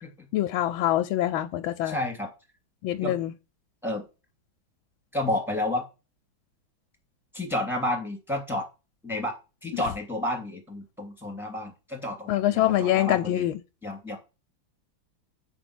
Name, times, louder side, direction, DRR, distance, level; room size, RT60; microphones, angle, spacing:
voice 1, 0.3-2.0 2.8-3.3 12.3-13.5, left 13 dB, 90° left, 1.4 m, -24 dB
voice 2, 1.8-2.3 3.0-3.2 3.8-4.1 5.1-5.8 7.3-8.7 9.0-9.4 9.6-13.5 13.8-14.2, left 1 dB, ahead, 2.6 m, -31 dB
9.5 x 4.5 x 6.0 m
omnidirectional pair, 2.2 m